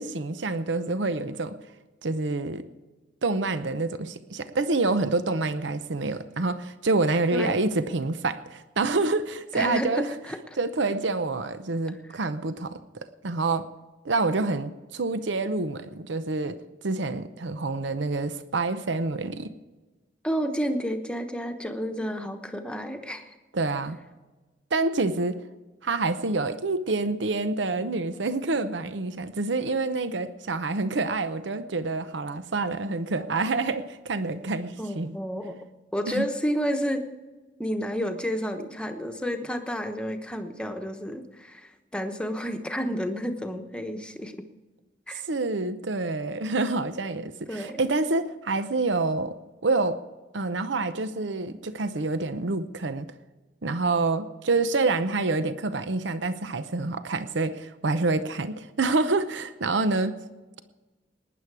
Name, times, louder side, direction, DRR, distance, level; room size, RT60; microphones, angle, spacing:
voice 1, 0.0-1.6 2.0-2.6 3.2-10.1 10.6-13.7 14.0-16.6 16.8-19.6 23.5-24.0 24.7-25.4 25.8-35.2 36.1-36.2 45.1-49.4 49.6-50.0 50.3-53.1 53.6-60.1, right 3 dB, 80° right, 11 dB, 0.8 m, -27 dB
voice 2, 9.5-10.4 20.2-23.3 34.8-35.6 35.9-37.0 37.6-44.3 45.1-45.2 47.5-47.8, equal, 5° left, 5 dB, 1.0 m, -30 dB
19.0 x 10.0 x 4.8 m, 1.2 s
head